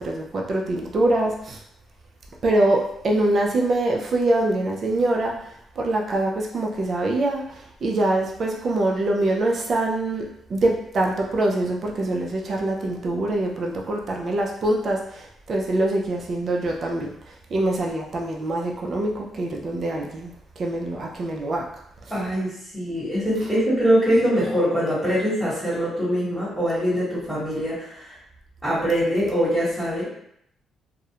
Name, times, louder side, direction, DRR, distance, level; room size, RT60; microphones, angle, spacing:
voice 1, 0.0-1.6 2.4-5.4 5.8-17.1 17.5-21.7, right 1 dB, 50° right, 0 dB, 0.4 m, -24 dB
voice 2, 22.1-28.1 28.6-30.1, equal, ahead, -11 dB, 1.2 m, -23 dB
2.3 x 2.0 x 2.8 m, 0.74 s
cardioid pair, 90°, 0 cm